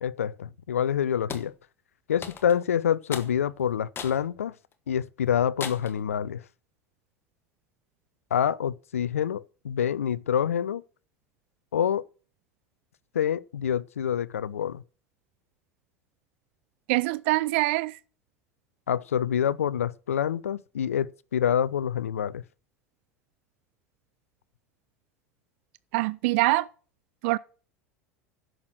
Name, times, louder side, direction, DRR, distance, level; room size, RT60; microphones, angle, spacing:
voice 1, 0.0-1.5 2.1-4.5 4.9-6.4 8.3-10.8 11.7-12.0 13.1-14.8 18.9-22.4, left 9 dB, 75° left, 0.5 m, -27 dB
sound 1, 1.3-1.5 2.2-2.6 3.1-3.3 3.9-4.2 4.7-4.8 5.6-6.0, left 6 dB, 30° left, 1.5 m, -37 dB
voice 2, 16.9-18.0 25.9-26.7 27.2-27.4, right 20 dB, 55° right, 0.4 m, -24 dB
10.5 x 6.4 x 6.6 m
figure-of-eight pair, 75°, 8 cm